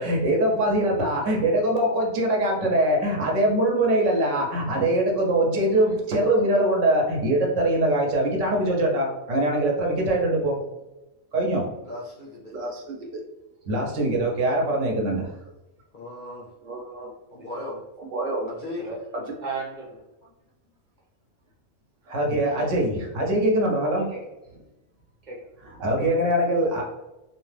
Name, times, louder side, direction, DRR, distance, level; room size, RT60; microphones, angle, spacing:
voice 1, 0.0-10.6 11.3-11.7 12.5-13.2 13.7-15.3 16.6-17.1 18.1-18.5 22.1-24.1 25.8-26.8, right 1 dB, 75° right, 0 dB, 1.1 m, -23 dB
voice 2, 11.8-12.5 15.9-16.5 17.3-17.8 18.5-18.9, left 2 dB, 60° left, -4 dB, 0.5 m, -37 dB
voice 3, 19.4-20.1 22.4-22.7 24.0-24.2 24.5-24.6 25.2-25.8, right 4 dB, 40° right, -3 dB, 0.9 m, -37 dB
2.8 x 2.1 x 3.2 m, 0.96 s
omnidirectional pair, 1.3 m